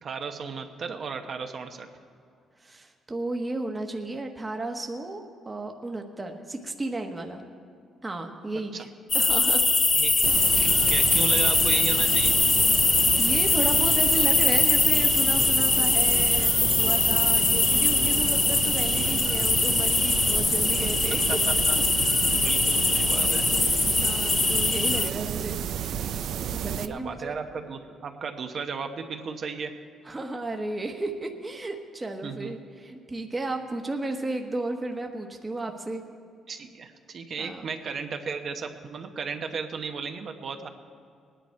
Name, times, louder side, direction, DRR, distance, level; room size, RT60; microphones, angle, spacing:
voice 1, 0.0-1.9 8.7-8.9 9.9-10.3 10.6-12.4 20.6-20.7 21.3-23.4 24.5-24.8 26.8-29.7 32.2-32.6 36.5-40.7, right 5 dB, 55° right, 5 dB, 0.9 m, -35 dB
voice 2, 2.6-7.4 8.0-8.9 9.1-9.6 13.2-21.4 23.3-23.5 23.7-25.6 26.5-27.4 30.0-36.0 37.4-37.7, right 2 dB, 20° right, 3 dB, 1.2 m, -33 dB
sound 1, 9.1-25.1, left 3 dB, 25° left, 0.7 m, -22 dB
sound 2, 10.2-26.9, right 9 dB, 75° right, 0.5 m, -31 dB
19.0 x 10.0 x 4.5 m, 2.3 s
cardioid pair, 90°, 0 cm